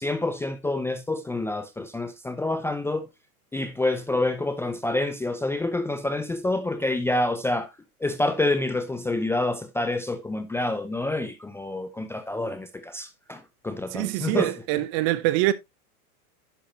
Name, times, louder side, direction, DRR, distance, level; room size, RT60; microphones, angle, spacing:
voice 1, 0.0-3.1 3.5-7.7 8.0-14.5, left 2 dB, 5° left, 0.5 m, -27 dB
voice 2, 13.9-15.5, right 16 dB, 45° right, 0.9 m, -24 dB
10.5 x 6.3 x 2.8 m
hypercardioid pair, 115°, 44 cm